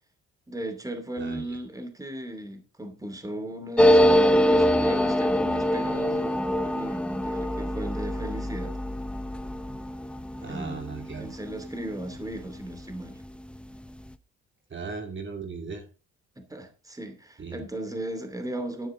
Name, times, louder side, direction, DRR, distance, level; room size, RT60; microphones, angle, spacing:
voice 1, 0.5-8.8 10.4-10.8 11.2-13.2 16.4-18.9, right 1 dB, 10° right, 2.7 m, -36 dB
voice 2, 1.2-1.6 10.4-11.3 14.7-15.8 17.4-17.6, right 4 dB, 40° right, 2.5 m, -37 dB
sound 1, 3.8-12.9 13.2-13.3 13.5-14.1, equal, 5° left, 0.8 m, -24 dB
12.5 x 10.5 x 3.7 m
cardioid pair, 90°, 30 cm